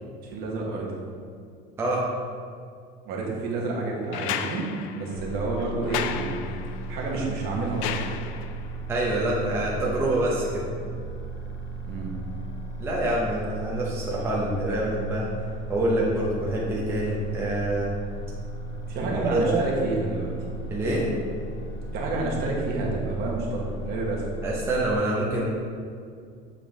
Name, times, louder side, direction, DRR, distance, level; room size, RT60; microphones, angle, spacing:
voice 1, 0.2-0.9 3.0-6.4 6.9-8.1 11.8-12.1 18.9-20.3 21.9-24.2, right 3 dB, 55° right, -2 dB, 1.2 m, -29 dB
sound 1, 4.1-8.7 10.3-10.4, left 9 dB, 85° left, 0.4 m, -34 dB
sound 2, 5.1-25.0, right 2 dB, 35° left, 0.7 m, -36 dB
voice 2, 8.9-10.6 12.8-15.3 15.7-17.9 19.0-19.6 20.7-21.1 24.4-25.5, right 1 dB, 10° right, -5 dB, 0.6 m, -26 dB
6.9 x 3.8 x 3.7 m, 2.2 s
cardioid pair, 170°, 19 cm